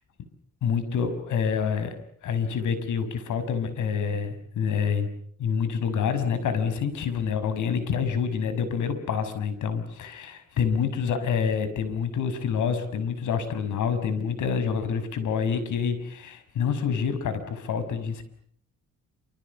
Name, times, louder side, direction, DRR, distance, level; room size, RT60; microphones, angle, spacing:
voice 1, 0.6-2.0 2.2-5.1 5.4-18.2, left 6 dB, 80° left, 12 dB, 6.2 m, -27 dB
29.0 x 27.5 x 7.1 m, 0.64 s
cardioid pair, 90°, 30 cm